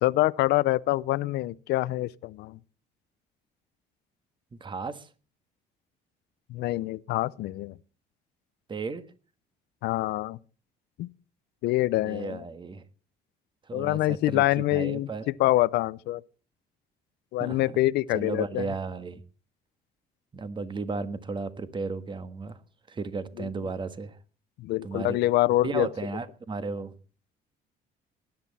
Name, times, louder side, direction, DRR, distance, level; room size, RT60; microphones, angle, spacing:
voice 1, 0.0-2.6 6.5-7.7 9.8-10.4 11.0-11.1 11.6-12.4 13.7-16.2 17.3-18.7 23.4-23.5 24.6-25.9, left 17 dB, 80° left, 0.6 m, -25 dB
voice 2, 4.5-5.1 8.7-9.0 12.0-12.8 13.7-15.2 17.4-17.8 18.1-19.2 20.3-22.6 22.9-24.2 24.8-25.2 25.6-26.9, right 4 dB, 30° right, 1.5 m, -34 dB
19.5 x 10.5 x 4.2 m
cardioid pair, 110°, 17 cm